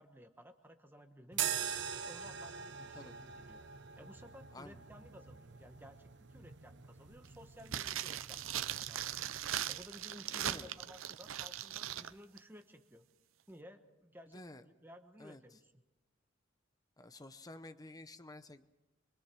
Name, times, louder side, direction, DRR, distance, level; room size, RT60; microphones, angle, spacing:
voice 1, 0.0-1.7 2.0-3.6 4.0-9.3 9.7-13.0 13.5-15.7, equal, 10° right, 6 dB, 1.3 m, -56 dB
sound 1, 1.3-9.8, right 8 dB, 65° right, 1.1 m, -44 dB
sound 2, 7.7-12.1 12.4-12.5, right 11 dB, 85° right, 0.7 m, -39 dB
voice 2, 10.3-10.7 14.3-14.6 15.2-15.4 17.0-18.6, left 2 dB, 20° left, 10 dB, 0.8 m, -51 dB
24.0 x 23.5 x 6.2 m, 1.0 s
head